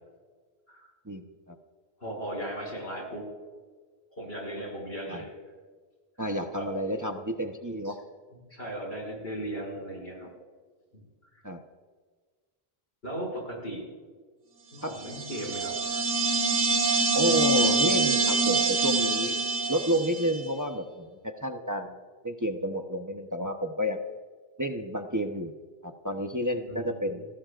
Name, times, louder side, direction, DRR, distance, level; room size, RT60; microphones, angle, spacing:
voice 1, 1.0-1.6 5.1-5.2 6.2-8.0 11.4-11.6 14.8-15.0 17.1-19.3 19.7-22.0 22.2-24.0 24.6-25.5 25.8-27.3, equal, 20° right, 3 dB, 1.0 m, -30 dB
voice 2, 2.0-3.3 4.2-5.3 6.6-6.7 7.8-7.9 8.5-10.3 10.9-11.0 11.3-11.4 13.0-13.8 14.7-16.0 26.7-27.2, right 1 dB, 80° left, -1 dB, 6.7 m, -37 dB
sound 1, 15.0-20.4, right 3 dB, 65° right, 1.6 m, -25 dB
29.0 x 20.0 x 2.5 m, 1.5 s
omnidirectional pair, 1.0 m